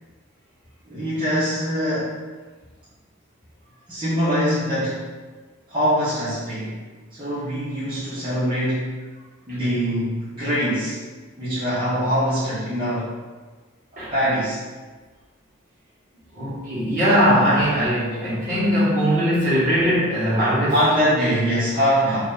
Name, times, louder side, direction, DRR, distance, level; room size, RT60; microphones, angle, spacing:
voice 1, 0.9-2.1 3.9-5.0 5.7-6.8 7.1-8.9 9.5-11.0 11.4-13.1 14.1-14.6 17.4-17.5 20.7-22.2, equal, 25° right, -13 dB, 0.9 m, -23 dB
voice 2, 16.3-20.8 22.0-22.2, equal, 45° right, -10 dB, 1.5 m, -20 dB
2.9 x 2.6 x 3.7 m, 1.3 s
head